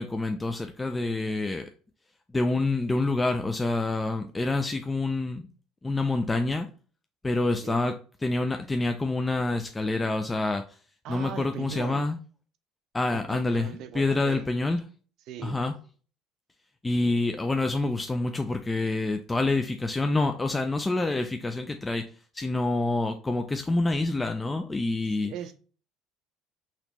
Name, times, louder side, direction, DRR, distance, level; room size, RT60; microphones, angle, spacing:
voice 1, 0.0-1.7 2.3-5.5 5.8-6.7 7.2-10.8 11.1-12.2 12.9-14.8 15.4-15.7 16.8-25.3, left 2 dB, 15° left, 0.3 m, -27 dB
voice 2, 11.0-12.0 13.1-14.5 15.3-15.6 25.2-25.5, right 10 dB, 65° right, 0.4 m, -39 dB
4.1 x 2.9 x 3.0 m
supercardioid pair, 85°, 0 cm